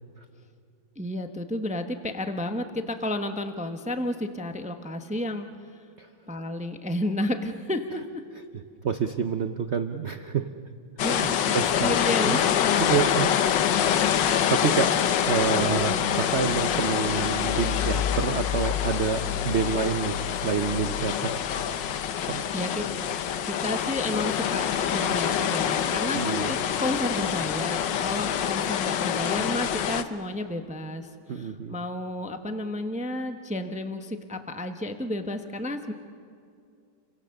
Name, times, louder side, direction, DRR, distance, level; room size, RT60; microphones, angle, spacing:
voice 1, 1.0-5.5 6.3-8.2 11.0-11.5 11.8-12.8 15.5-16.0 22.5-22.9 23.5-35.9, left 1 dB, 10° right, 7 dB, 0.4 m, -31 dB
voice 2, 8.8-10.5 11.2-11.9 12.2-12.4 12.8-13.8 14.5-14.9 15.2-21.4 22.2-22.4 26.1-26.5 31.3-31.8, right 6 dB, 90° right, 8 dB, 0.5 m, -28 dB
sound 1, 11.0-30.0, left 9 dB, 65° left, 1.4 m, -26 dB
29.5 x 24.0 x 6.6 m, 2.4 s
omnidirectional pair, 2.3 m